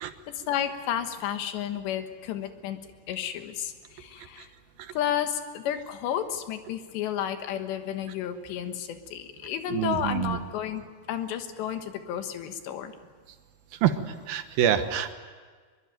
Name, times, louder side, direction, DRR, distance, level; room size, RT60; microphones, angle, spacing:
voice 1, 0.0-2.8 3.1-4.5 4.9-13.0, left 10 dB, 80° left, 8 dB, 3.6 m, -32 dB
voice 2, 9.7-10.4 13.8-14.0 14.3-15.1, right 10 dB, 65° right, 8 dB, 2.7 m, -25 dB
23.0 x 22.5 x 9.2 m, 1.5 s
omnidirectional pair, 5.0 m